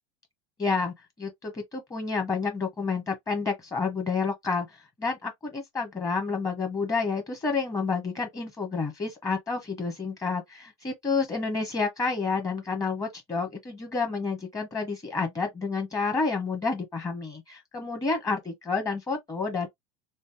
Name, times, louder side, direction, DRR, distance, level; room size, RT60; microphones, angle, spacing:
voice 1, 0.6-4.7 5.0-19.7, left 4 dB, 20° left, 1.3 m, -29 dB
3.2 x 2.6 x 2.9 m
supercardioid pair, 105°, 15 cm